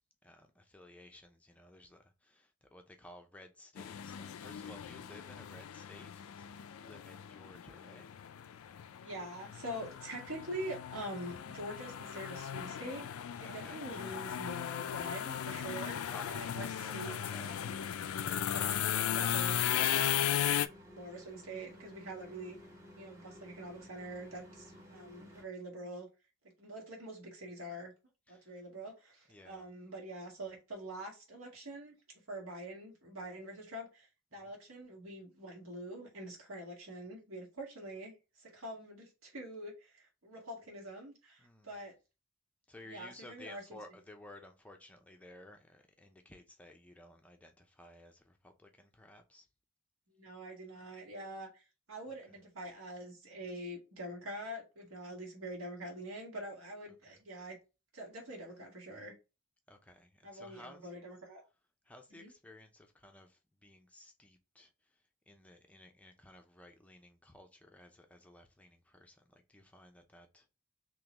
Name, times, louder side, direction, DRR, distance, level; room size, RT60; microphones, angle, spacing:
voice 1, 0.2-8.2 13.4-13.8 16.0-19.3 24.8-25.0 28.3-28.6 29.3-29.7 34.4-34.6 41.4-41.8 42.7-49.5 52.3-52.4 57.1-57.2 59.7-60.9 61.8-70.5, left 1 dB, 5° left, 0.6 m, -56 dB
sound 1, 3.8-20.7, left 10 dB, 70° left, 0.3 m, -36 dB
voice 2, 9.0-16.7 16.9-17.2 17.6-17.8 18.4-20.1 21.0-22.6 22.9-26.1 26.6-27.9 28.3-32.0 32.3-41.9 42.9-43.6 50.1-51.6 51.9-57.6 57.9-59.1 60.2-61.4 62.1-62.3, right 1 dB, 70° right, 1.7 m, -45 dB
sound 2, 18.9-25.4, left 1 dB, 15° right, 1.1 m, -54 dB
3.7 x 3.0 x 2.9 m
head